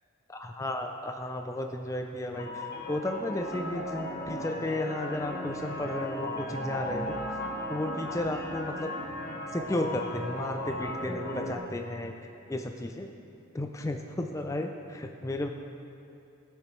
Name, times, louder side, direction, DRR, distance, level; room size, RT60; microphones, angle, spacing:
voice 1, 0.3-7.2 7.7-8.9 9.5-13.1 13.5-15.5, left 1 dB, 15° left, 4 dB, 0.4 m, -33 dB
sound 1, 2.3-11.6, left 1 dB, 45° left, 1.1 m, -36 dB
18.0 x 6.7 x 3.2 m, 2.7 s
head